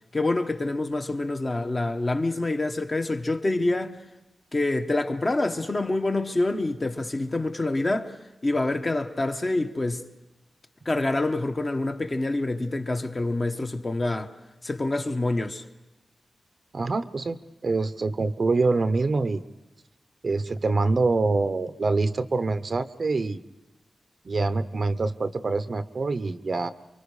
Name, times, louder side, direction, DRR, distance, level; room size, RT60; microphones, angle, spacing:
voice 1, 0.1-4.0 4.5-8.1 8.4-10.0 10.8-14.3 14.6-15.6, left 2 dB, 30° left, 1.2 m, -26 dB
voice 2, 16.7-19.4 20.2-23.4 24.2-26.7, right 3 dB, 45° right, 0.8 m, -25 dB
29.0 x 24.0 x 4.9 m
wide cardioid pair, 125°, 0 cm